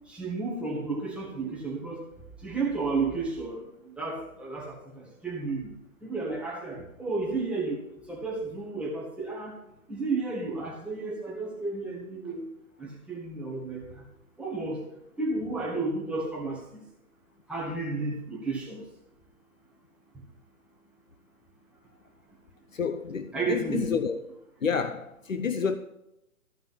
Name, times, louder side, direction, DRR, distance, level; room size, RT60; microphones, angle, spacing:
voice 1, 0.1-2.0 2.4-5.7 6.0-7.8 8.1-9.5 9.9-12.5 12.8-14.0 14.4-14.8 15.2-16.8 17.5-18.8 23.3-24.0, right 3 dB, 5° right, 1.8 m, -32 dB
voice 2, 22.7-24.2 24.6-25.8, left 6 dB, 65° left, 0.9 m, -29 dB
14.0 x 5.9 x 7.5 m
figure-of-eight pair, 130°, 43 cm